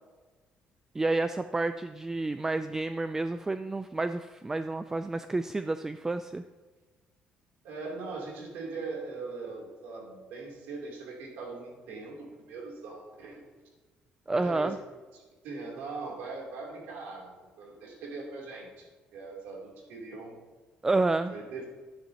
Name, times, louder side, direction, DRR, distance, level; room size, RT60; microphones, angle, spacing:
voice 1, 0.9-6.4 14.3-14.8 20.8-21.4, right 2 dB, 15° right, 10 dB, 0.3 m, -29 dB
voice 2, 7.6-13.4 14.3-14.7 15.1-20.4 21.3-21.7, right 3 dB, 85° right, -2 dB, 3.0 m, -41 dB
12.5 x 10.0 x 2.9 m, 1.3 s
cardioid pair, 120°, 3 cm